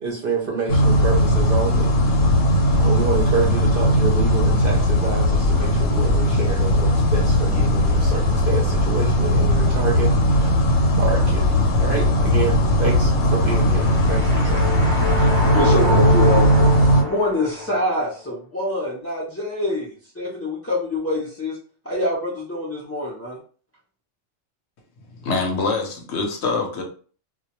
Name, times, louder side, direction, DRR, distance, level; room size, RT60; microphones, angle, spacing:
voice 1, 0.0-2.2 2.7-10.1 10.4-11.5 11.8-14.7, right 4 dB, 60° right, -1 dB, 0.6 m, -28 dB
sound 1, 0.7-17.0, equal, 90° left, 1.1 m, -18 dB
sound 2, 13.5-17.9, left 2 dB, 20° right, 0.7 m, -26 dB
voice 2, 15.1-16.5 16.9-21.6 21.8-23.4, left 2 dB, 25° left, -8 dB, 0.3 m, -25 dB
voice 3, 25.1-26.8, left 4 dB, 65° left, 3 dB, 0.8 m, -24 dB
2.2 x 2.2 x 2.9 m, 0.42 s
omnidirectional pair, 1.3 m